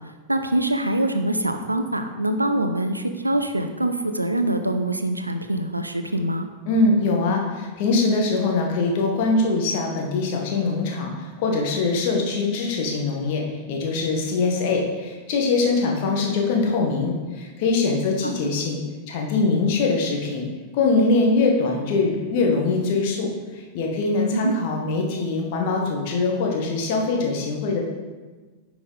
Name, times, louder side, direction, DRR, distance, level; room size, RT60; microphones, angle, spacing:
voice 1, 0.3-6.5 18.2-18.3 24.3-24.6, right 1 dB, 85° right, 7 dB, 0.6 m, -24 dB
voice 2, 6.6-18.8 19.1-20.4 20.7-27.8, left 3 dB, 50° left, 0 dB, 1.4 m, -23 dB
9.6 x 4.8 x 4.0 m, 1.3 s
figure-of-eight pair, 90°, 0 cm